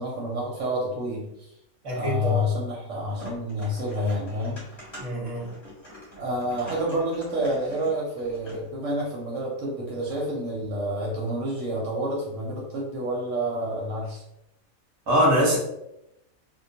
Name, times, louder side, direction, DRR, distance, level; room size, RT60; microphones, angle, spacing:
voice 1, 0.0-1.5 1.9-4.6 6.2-14.2, equal, 70° right, -3 dB, 0.8 m, -29 dB
voice 2, 1.8-2.4 5.0-5.5 15.1-15.6, equal, 25° right, -5 dB, 0.7 m, -23 dB
sound 1, 3.1-8.7, equal, 25° left, 0.9 m, -45 dB
2.2 x 2.2 x 2.7 m, 0.85 s
omnidirectional pair, 1.5 m